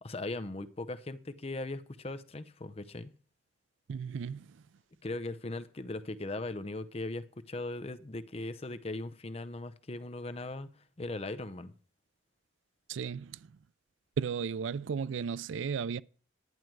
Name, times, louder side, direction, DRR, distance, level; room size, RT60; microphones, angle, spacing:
voice 1, 0.0-3.1 5.0-10.7 11.0-11.7, left 2 dB, 30° left, 0.6 m, -39 dB
voice 2, 3.9-4.6 12.9-13.5 14.2-16.0, right 6 dB, 85° right, 0.4 m, -35 dB
11.0 x 9.2 x 4.6 m
head